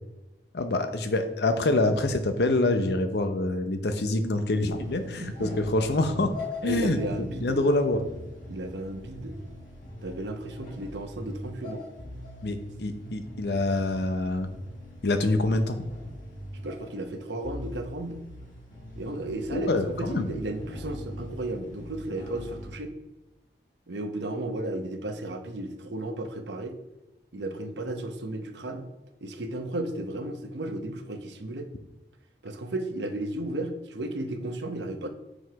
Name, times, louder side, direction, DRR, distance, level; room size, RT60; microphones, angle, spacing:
voice 1, 0.5-6.3 6.6-7.0 7.4-8.0 12.4-14.5 15.0-15.8 19.5-20.3, left 2 dB, 70° left, 8 dB, 0.7 m, -26 dB
sound 1, 4.7-22.7, left 1 dB, 45° left, 1.7 m, -42 dB
voice 2, 5.2-5.6 6.6-7.6 8.5-9.4 10.0-11.8 16.5-18.2 19.0-22.9 23.9-26.7 27.3-28.9 29.2-31.7 32.4-35.1, right 1 dB, 85° right, 5 dB, 0.8 m, -34 dB
5.9 x 5.1 x 4.7 m, 1.0 s
head